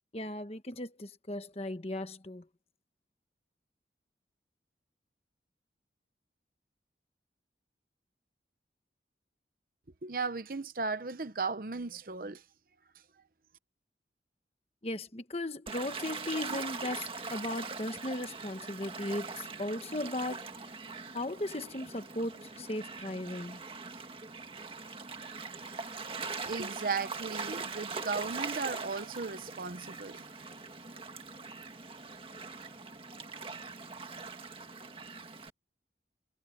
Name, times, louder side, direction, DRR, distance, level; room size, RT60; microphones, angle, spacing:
voice 1, 0.1-2.5 14.8-20.5 21.1-23.6, left 1 dB, 35° left, 1.2 m, -37 dB
voice 2, 10.0-12.4 26.4-30.3, right 4 dB, 50° right, 0.8 m, -36 dB
Gull seagull / Waves surf, 15.7-35.5, right 4 dB, 30° right, 1.9 m, -42 dB
head